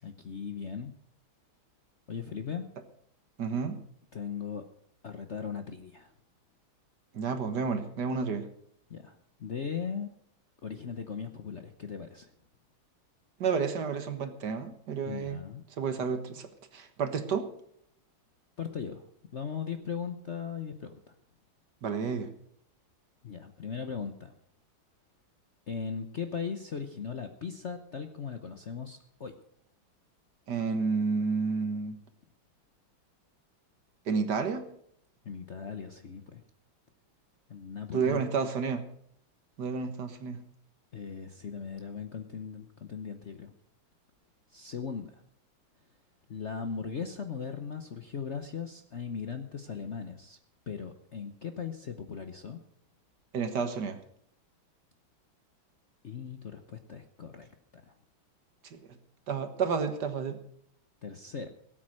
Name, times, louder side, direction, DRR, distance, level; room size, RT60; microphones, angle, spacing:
voice 1, 0.0-0.9 2.1-2.6 4.1-4.6 5.0-6.1 8.9-10.1 10.6-12.3 15.1-15.6 18.6-21.1 23.2-24.3 25.7-29.3 35.2-36.4 37.5-38.2 40.9-43.5 44.5-45.2 46.3-50.4 50.7-52.6 56.0-57.9 61.0-61.5, left 6 dB, 45° left, 7 dB, 0.9 m, -38 dB
voice 2, 3.4-3.8 7.1-8.5 13.4-15.4 15.8-17.5 21.8-22.3 30.5-32.0 34.1-34.7 37.9-38.8 39.6-40.4 53.3-54.0 58.7-58.8 59.3-60.4, right 5 dB, 55° right, 9 dB, 1.8 m, -30 dB
17.5 x 8.6 x 6.3 m, 0.69 s
omnidirectional pair, 2.2 m